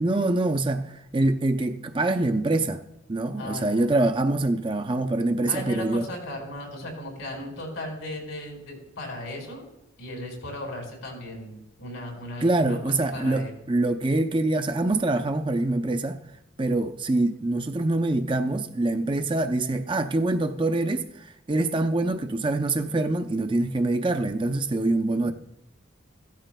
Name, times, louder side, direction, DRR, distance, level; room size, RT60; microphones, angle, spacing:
voice 1, 0.0-2.8 3.1-6.1 12.4-16.2 16.6-25.3, right 2 dB, 25° right, 0.5 m, -25 dB
voice 2, 3.4-3.9 5.4-9.6 10.0-12.8 13.1-13.5 24.9-25.3, left 1 dB, 85° left, 4.6 m, -37 dB
17.0 x 13.0 x 2.2 m
head